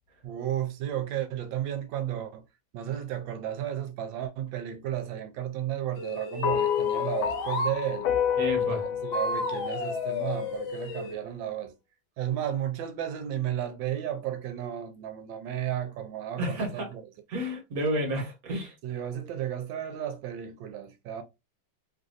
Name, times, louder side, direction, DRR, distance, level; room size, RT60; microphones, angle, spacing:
voice 1, 0.2-2.4 2.7-8.1 8.6-11.7 12.2-17.0 18.8-21.2, right 11 dB, 75° right, 1.3 m, -33 dB
sound 1, 6.0-7.8 9.1-11.2, left 3 dB, 65° left, 1.3 m, -33 dB
sound 2, 6.4-10.9, left 9 dB, 85° left, 1.4 m, -29 dB
voice 2, 8.4-8.8 16.4-16.9 17.3-18.7, equal, 50° right, 1.4 m, -30 dB
3.3 x 2.5 x 2.5 m
omnidirectional pair, 2.2 m